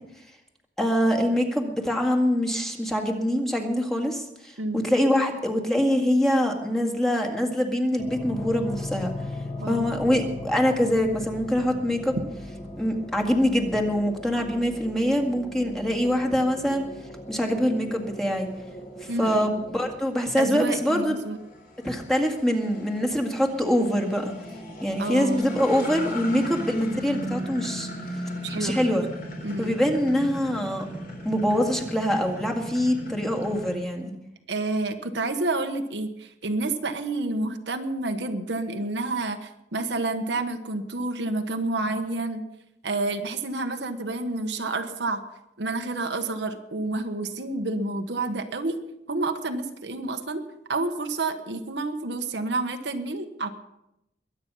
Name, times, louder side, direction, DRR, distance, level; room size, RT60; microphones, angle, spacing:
voice 1, 0.8-9.1 9.7-12.2 12.8-16.9 17.3-18.5 19.0-21.2 21.8-24.3 24.8-27.9 28.6-29.1 29.6-30.9 31.3-34.1, equal, ahead, 1 dB, 1.9 m, -24 dB
sound 1, 8.0-20.0, left 1 dB, 30° left, 2.2 m, -38 dB
voice 2, 9.6-9.9 19.1-19.6 20.4-21.4 25.0-25.4 28.4-28.8 29.4-29.8 34.5-42.4 42.8-45.2 45.6-48.8 49.1-50.4 50.7-53.5, right 2 dB, 80° right, 6 dB, 1.3 m, -29 dB
sound 2, 17.8-33.7, equal, 55° left, 3.8 m, -38 dB
22.0 x 8.9 x 5.5 m, 0.86 s
head